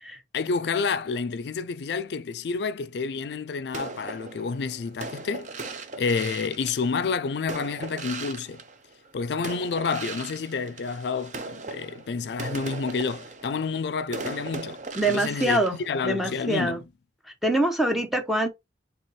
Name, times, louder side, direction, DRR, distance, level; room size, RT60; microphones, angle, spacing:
voice 1, 0.3-8.6 9.1-16.8, left 5 dB, 65° left, 0.4 m, -29 dB
sound 1, 3.7-9.1 9.4-16.6, right 3 dB, 40° right, 0.6 m, -38 dB
voice 2, 14.9-15.8 16.0-16.8 17.4-18.5, right 1 dB, ahead, 0.7 m, -24 dB
4.3 x 3.4 x 3.1 m
head